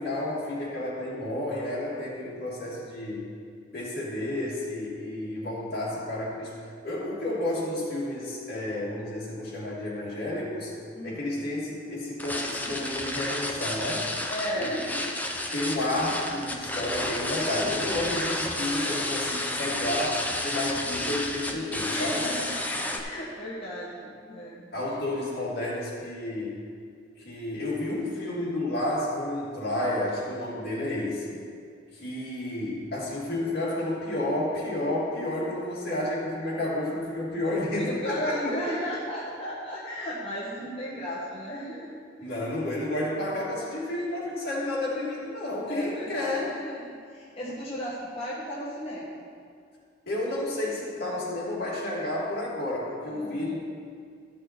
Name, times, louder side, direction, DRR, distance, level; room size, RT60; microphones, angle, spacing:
voice 1, 0.0-3.3 3.7-6.5 6.8-10.7 11.0-14.1 14.5-15.1 15.5-22.4 24.7-26.6 27.2-31.3 31.9-38.5 42.2-46.5 50.1-53.6, left 1 dB, 55° left, -6 dB, 2.8 m, -31 dB
voice 2, 10.9-11.3 14.3-14.8 21.9-22.6 22.8-24.7 31.0-31.3 37.8-42.3 45.7-49.2 53.0-53.5, equal, 30° left, -7 dB, 1.3 m, -35 dB
sound 1, 12.2-23.0, left 1 dB, 10° left, 0.7 m, -31 dB
13.5 x 6.3 x 4.4 m, 2.2 s
head